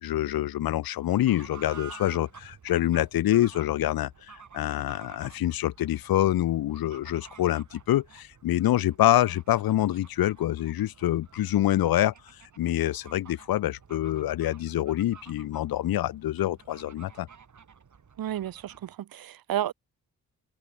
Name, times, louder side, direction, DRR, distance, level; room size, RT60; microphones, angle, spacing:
voice 1, 0.0-17.3, left 13 dB, 80° left, 1.7 m, -26 dB
Fowl / Bird, 0.9-19.0, right 6 dB, 55° right, 7.7 m, -51 dB
voice 2, 18.2-19.7, right 11 dB, 75° right, 2.3 m, -32 dB
supercardioid pair, 60°, 35 cm